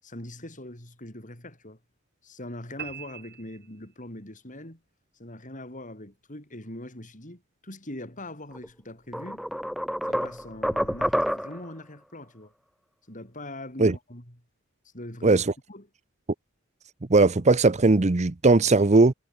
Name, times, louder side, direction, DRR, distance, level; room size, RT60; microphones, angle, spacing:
voice 1, 0.0-1.8 2.2-4.8 5.1-9.4 10.0-12.5 13.1-14.4 14.9-15.4 15.7-15.9, left 1 dB, 40° left, 7.0 m, -42 dB
sound 1, 2.8-4.3, right 8 dB, 50° right, 3.0 m, -42 dB
sound 2, 8.5-8.7 9.1-11.7, equal, ahead, 1.3 m, -28 dB
voice 2, 17.1-19.1, right 3 dB, 35° right, 0.7 m, -18 dB
head